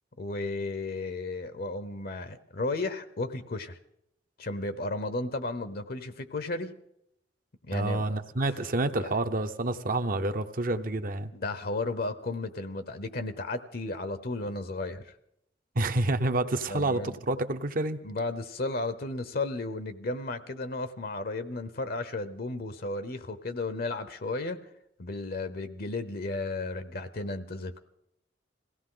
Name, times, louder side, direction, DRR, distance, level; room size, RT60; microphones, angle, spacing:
voice 1, 0.2-3.8 4.4-6.7 7.7-8.0 8.9-9.1 11.3-15.1 16.7-17.1 18.0-24.6 25.0-27.8, left 2 dB, 55° left, 11 dB, 0.8 m, -34 dB
voice 2, 7.7-11.3 15.7-18.0, right 2 dB, 50° right, 8 dB, 0.9 m, -28 dB
22.0 x 16.5 x 3.9 m, 0.78 s
head